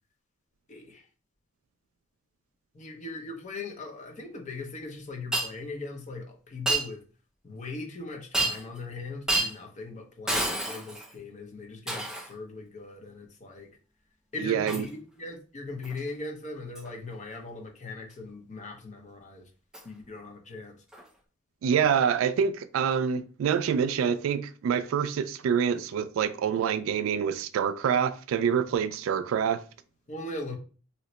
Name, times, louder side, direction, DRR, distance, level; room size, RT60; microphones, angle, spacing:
voice 1, 0.7-1.1 2.7-7.0 7.4-13.7 14.3-19.5 19.8-20.8 30.1-30.6, left 3 dB, 40° left, 0.7 m, -39 dB
Shatter, 5.3-5.5 6.7-6.9 8.3-8.8 9.3-9.6 10.3-11.1 11.9-12.3 14.7-14.9 15.8-16.0 16.7-16.9 19.7-19.8 20.9-21.0, right 2 dB, 5° right, 0.4 m, -29 dB
voice 2, 14.4-14.8 21.6-29.6, right 7 dB, 85° right, 0.3 m, -26 dB
2.8 x 2.1 x 3.9 m
head